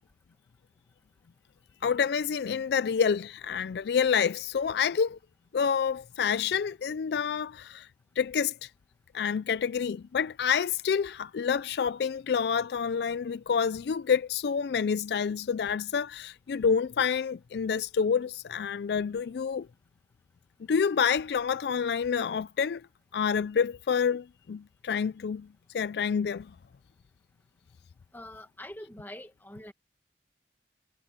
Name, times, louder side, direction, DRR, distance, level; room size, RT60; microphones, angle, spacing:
voice 1, 1.8-5.2 5.5-7.9 8.2-8.7 9.1-19.7 20.7-22.8 23.1-25.5 25.7-26.5, left 6 dB, 65° left, 0.4 m, -28 dB
voice 2, 28.1-29.7, left 1 dB, 10° left, 2.0 m, -44 dB
head